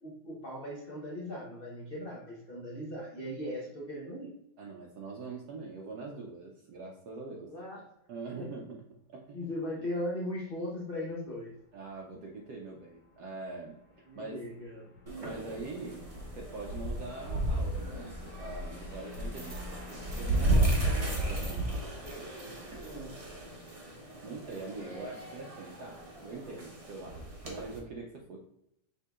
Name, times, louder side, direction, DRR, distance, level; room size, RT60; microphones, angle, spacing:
voice 1, 0.0-4.3 7.5-7.8 9.3-11.5 14.1-14.9 19.9-20.0 22.8-23.1 23.4-23.6, left 1 dB, 70° left, -3 dB, 0.5 m, -38 dB
voice 2, 4.6-7.5 8.1-9.5 11.7-13.8 14.2-14.4 15.2-16.0 16.3-19.5 20.1-22.8 23.2-23.5 24.2-28.4, right 3 dB, 70° right, -1 dB, 1.0 m, -43 dB
sound 1, 10.4-21.5, left 2 dB, 40° left, 1.2 m, -54 dB
sound 2, 15.1-27.8, right 1 dB, 35° right, 0.5 m, -34 dB
5.5 x 3.5 x 2.3 m, 0.78 s
omnidirectional pair, 2.1 m